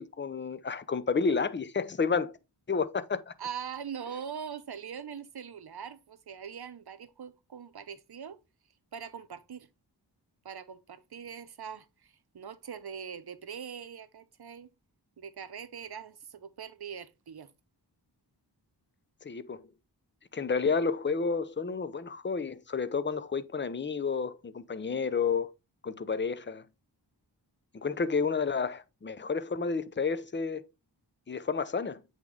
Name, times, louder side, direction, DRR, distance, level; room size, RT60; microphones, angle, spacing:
voice 1, 0.0-2.3 2.7-3.2 19.2-19.6 20.3-25.5 25.8-26.6 27.7-30.6 31.3-32.0, left 5 dB, 25° left, 0.6 m, -30 dB
voice 2, 3.4-8.4 8.9-9.7 10.4-14.7 15.2-17.5, right 7 dB, 60° right, 0.8 m, -42 dB
8.1 x 3.7 x 3.6 m
wide cardioid pair, 60°, 43 cm